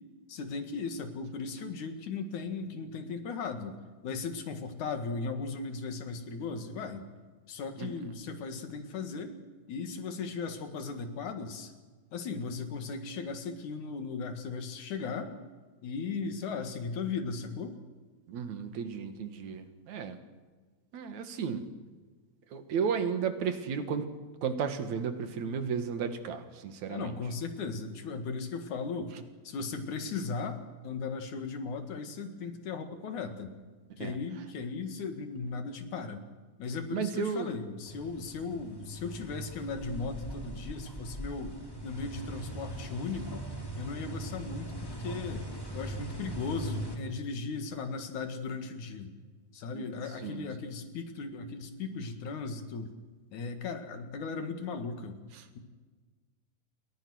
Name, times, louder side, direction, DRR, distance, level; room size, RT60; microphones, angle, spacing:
voice 1, 0.3-3.8 4.0-7.1 7.5-9.4 9.7-11.7 12.1-15.4 15.8-17.8 26.9-29.1 29.4-33.5 34.0-36.2 36.6-43.4 43.7-45.5 45.7-49.1 49.5-52.9 53.3-55.2, left 4 dB, 70° left, 7 dB, 3.2 m, -37 dB
voice 2, 18.3-20.2 20.9-21.6 22.5-24.1 24.4-27.1 34.0-34.2 36.9-37.5 49.7-50.0 50.2-50.5 55.4-55.5, right 6 dB, 65° right, 8 dB, 3.0 m, -33 dB
sound 1, 37.9-47.0, right 1 dB, 5° left, 2.9 m, -40 dB
29.0 x 22.0 x 6.4 m, 1.4 s
omnidirectional pair, 3.6 m